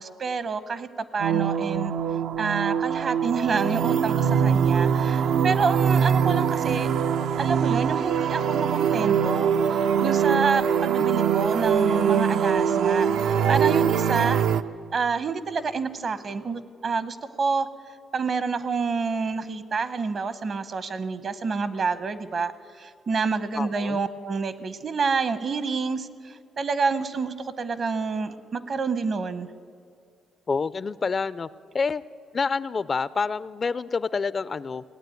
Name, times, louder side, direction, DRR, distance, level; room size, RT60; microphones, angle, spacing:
voice 1, 0.0-1.9 2.4-6.9 7.4-14.5 14.9-17.7 18.1-22.5 22.8-29.5, right 4 dB, 50° right, 14 dB, 0.8 m, -28 dB
sound 1, 1.2-14.6, right 7 dB, 75° right, 0.5 m, -23 dB
voice 2, 23.6-24.0 30.5-31.5 31.7-32.0 32.3-34.8, left 4 dB, 35° left, 17 dB, 0.4 m, -27 dB
17.5 x 8.9 x 9.2 m, 2.3 s
cardioid pair, 90°, 0 cm